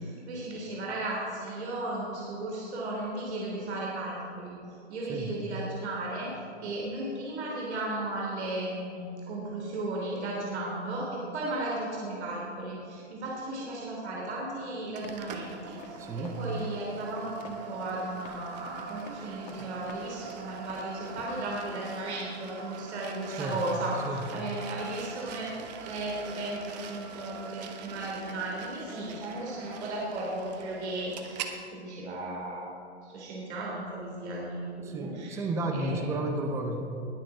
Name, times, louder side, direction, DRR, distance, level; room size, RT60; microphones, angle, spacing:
voice 1, 0.3-6.3 6.6-25.5 25.8-32.7 33.0-36.2, right 2 dB, 70° right, -3 dB, 3.2 m, -35 dB
Run, 15.0-21.3, left 5 dB, 35° left, 1.6 m, -49 dB
sound 1, 15.0-31.6, right 6 dB, 35° right, 1.0 m, -43 dB
voice 2, 16.0-16.4 23.4-23.6 24.0-24.2 34.8-36.8, right 2 dB, 10° right, 5 dB, 0.6 m, -32 dB
20.5 x 7.6 x 4.8 m, 2.7 s
hypercardioid pair, 150°, 35 cm